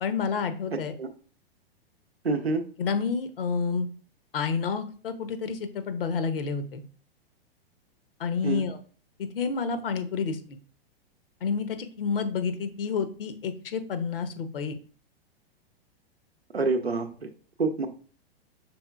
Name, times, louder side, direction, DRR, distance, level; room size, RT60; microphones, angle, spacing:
voice 1, 0.0-0.9 2.8-3.9 4.3-6.8 8.2-8.8 9.2-10.6 11.4-14.8, left 5 dB, 65° left, 10 dB, 0.8 m, -29 dB
voice 2, 0.7-1.1 2.2-2.6 8.4-8.6 16.5-17.3 17.6-17.9, right 3 dB, 90° right, 7 dB, 0.7 m, -27 dB
5.4 x 3.5 x 2.3 m, 0.41 s
figure-of-eight pair, 100°, 30 cm